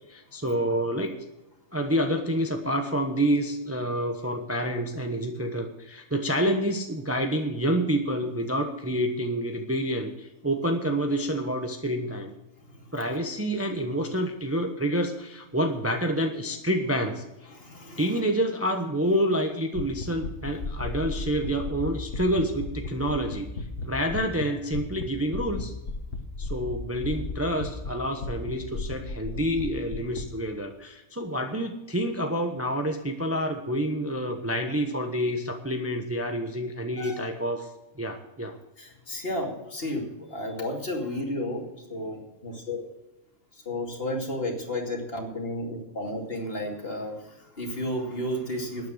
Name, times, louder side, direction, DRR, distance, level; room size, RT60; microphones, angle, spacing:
voice 1, 0.1-1.1 1.7-12.3 12.9-17.2 18.0-25.7 26.4-37.7 38.0-38.5, equal, 10° right, 4 dB, 0.9 m, -28 dB
voice 2, 17.5-18.2 37.0-37.3 38.8-42.8 43.5-48.9, left 1 dB, 45° left, 0 dB, 2.9 m, -33 dB
sound 1, 19.7-24.4 24.7-25.0 25.3-27.9 28.2-30.2, left 3 dB, 70° left, 1.8 m, -34 dB
12.5 x 9.7 x 6.5 m, 0.94 s
omnidirectional pair, 1.4 m